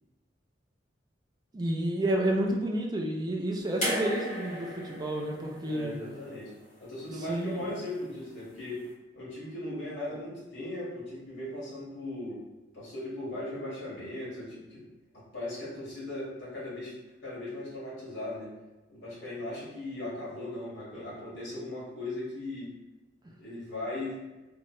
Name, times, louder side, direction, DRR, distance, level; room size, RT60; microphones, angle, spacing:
voice 1, 1.5-6.0 7.3-7.7, right 1 dB, 20° right, 1 dB, 0.3 m, -30 dB
sound 1, 3.8-7.0 8.2-8.3, equal, 40° left, 1.4 m, -36 dB
voice 2, 5.6-6.5 6.8-8.8 9.1-12.4 12.7-14.9 15.1-16.9 17.2-18.5 18.9-22.7 23.3-24.2, left 1 dB, 75° left, -7 dB, 1.5 m, -38 dB
3.0 x 2.3 x 2.9 m, 1.1 s
head